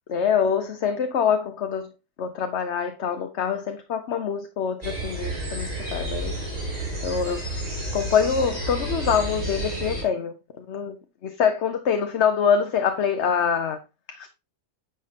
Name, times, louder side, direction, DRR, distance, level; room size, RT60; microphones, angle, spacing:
voice 1, 0.1-1.9 2.2-6.3 7.0-7.4 7.9-11.0 11.2-13.8 14.1-14.3, left 7 dB, 55° left, 1.0 m, -25 dB
sound 1, 4.8-10.0, right 1 dB, 25° right, 3.0 m, -31 dB
9.8 x 6.5 x 2.9 m
omnidirectional pair, 1.6 m